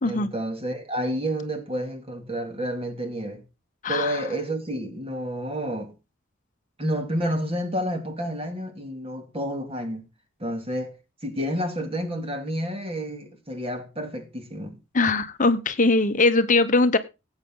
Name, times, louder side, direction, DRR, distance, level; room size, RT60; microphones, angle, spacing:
voice 1, 0.0-3.4 3.9-5.9 6.8-10.1 10.4-11.0 11.2-14.8, equal, 30° right, 2.5 m, -30 dB
voice 2, 3.8-4.2 14.9-17.0, left 3 dB, 40° left, 0.9 m, -21 dB
17.0 x 8.2 x 3.8 m
head